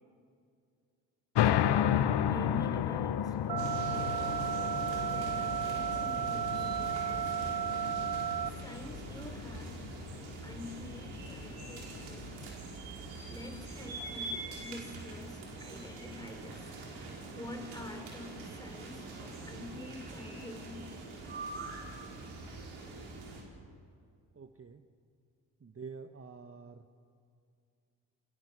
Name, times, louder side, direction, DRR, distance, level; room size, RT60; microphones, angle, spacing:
sound 1, 1.3-12.5, left 10 dB, 55° left, 1.2 m, -33 dB
voice 1, 1.4-1.8 2.2-4.5 5.1-7.9 8.6-9.8 10.4-12.5 13.3-16.7 17.3-20.9, left 2 dB, 10° left, 3 dB, 5.0 m, -47 dB
sound 2, 3.5-8.5, right 9 dB, 50° right, 1.1 m, -33 dB
sound 3, 3.6-23.4, right 2 dB, 70° right, 5.3 m, -44 dB
voice 2, 24.3-24.8 25.6-26.9, right 5 dB, 30° right, 7 dB, 1.4 m, -47 dB
28.5 x 23.0 x 6.8 m, 2.4 s
hypercardioid pair, 45°, 47 cm